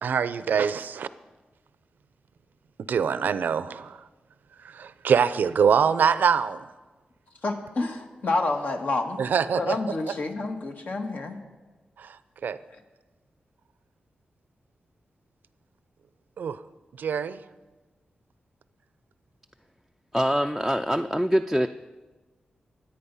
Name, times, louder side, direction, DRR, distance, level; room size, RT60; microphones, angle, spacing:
voice 1, 0.0-1.1 2.9-4.0 4.6-6.7 9.2-9.8 12.0-12.2 12.4-12.6 16.4-16.6 17.0-17.4, right 7 dB, 90° right, 14 dB, 0.6 m, -24 dB
voice 2, 7.4-9.3 9.6-11.4, left 2 dB, 65° left, 3 dB, 1.9 m, -28 dB
voice 3, 20.1-21.7, equal, 5° left, 7 dB, 0.5 m, -24 dB
23.5 x 8.7 x 5.6 m, 1.2 s
wide cardioid pair, 85°, 3 cm